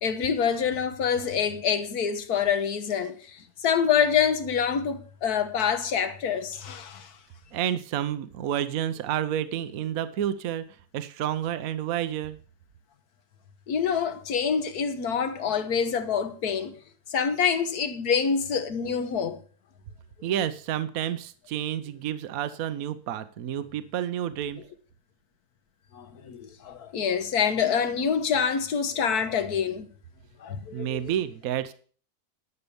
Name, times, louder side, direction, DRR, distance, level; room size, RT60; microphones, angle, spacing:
voice 1, 0.0-7.1 13.7-16.7 17.1-19.4 25.9-29.9 30.4-31.1, left 7 dB, 70° left, 1.7 m, -26 dB
voice 2, 7.5-10.6 10.9-12.4 20.2-24.6 30.7-31.7, right 10 dB, 65° right, 1.1 m, -30 dB
11.0 x 6.8 x 6.9 m
omnidirectional pair, 1.7 m